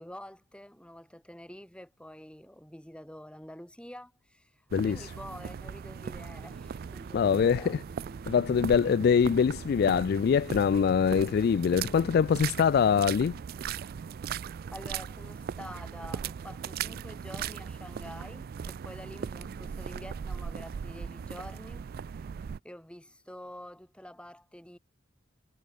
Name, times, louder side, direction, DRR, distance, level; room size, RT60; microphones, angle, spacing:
voice 1, 0.0-7.8 14.3-21.9 22.6-24.8, left 1 dB, 5° left, 5.5 m, -47 dB
sound 1, 4.7-22.6, right 7 dB, 55° right, 0.3 m, -39 dB
sound 2, 6.0-15.2, right 1 dB, 35° right, 3.4 m, -56 dB
voice 2, 7.1-7.8 8.3-13.4, left 7 dB, 55° left, 0.3 m, -24 dB
head